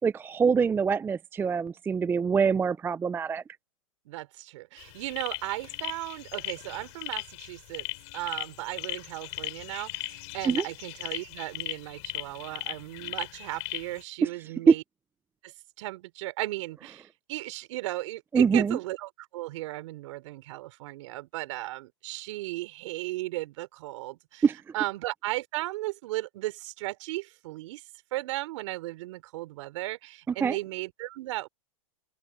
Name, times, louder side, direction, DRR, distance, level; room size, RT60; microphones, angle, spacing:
voice 1, 0.0-3.4 10.5-10.6 14.2-14.3 14.7-14.8 18.3-18.8 24.4-24.6 30.4-30.6, right 6 dB, 10° right, 0.5 m, -24 dB
voice 2, 4.1-7.9 8.1-14.8 15.4-24.5 24.7-27.8 28.1-31.5, right 18 dB, 60° right, 4.1 m, -36 dB
sound 1, 4.8-14.0, left 24 dB, 55° left, 7.8 m, -38 dB
open air
hypercardioid pair, 120°, 18 cm